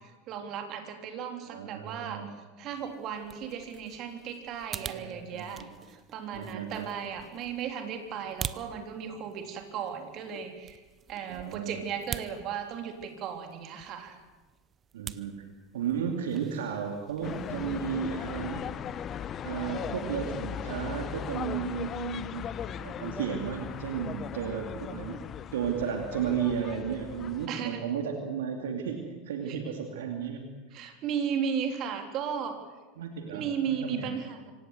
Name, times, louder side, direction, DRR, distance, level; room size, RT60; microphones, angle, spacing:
voice 1, 0.0-2.2 2.6-10.8 11.1-14.2 27.5-27.9 29.5-29.6 30.7-32.6 33.3-34.5, right 7 dB, 45° right, 5 dB, 3.4 m, -35 dB
voice 2, 1.5-2.3 4.7-5.7 6.3-6.9 11.3-11.8 14.9-15.4 15.7-18.7 19.4-22.5 22.8-25.2 25.5-30.5 33.0-34.1, right 7 dB, 70° right, 4 dB, 2.6 m, -34 dB
sound 1, 2.7-18.0, right 7 dB, 30° right, 0.9 m, -46 dB
sound 2, 17.2-27.5, left 9 dB, 35° left, 0.8 m, -38 dB
26.0 x 17.0 x 7.9 m, 1.3 s
figure-of-eight pair, 80°, 0 cm